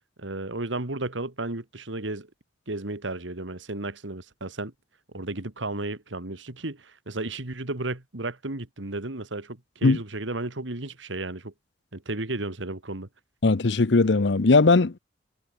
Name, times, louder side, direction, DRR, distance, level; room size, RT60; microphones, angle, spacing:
voice 1, 0.2-2.3 2.7-4.7 5.1-11.5 11.9-13.1, right 2 dB, 85° right, 2.2 m, -33 dB
voice 2, 13.4-15.0, left 3 dB, 70° left, 0.7 m, -19 dB
head